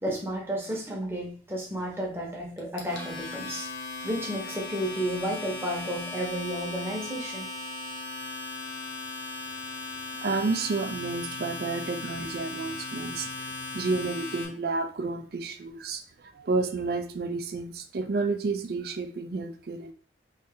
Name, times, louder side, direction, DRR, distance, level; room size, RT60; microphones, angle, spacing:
voice 1, 0.0-3.7 4.0-7.5, equal, 15° right, -2 dB, 0.9 m, -32 dB
Domestic sounds home sounds, 2.6-14.4, left 3 dB, 80° left, 1.0 m, -37 dB
voice 2, 10.2-13.3 13.7-16.0 16.4-19.9, right 3 dB, 55° right, 8 dB, 0.4 m, -30 dB
3.2 x 2.7 x 3.5 m, 0.42 s
head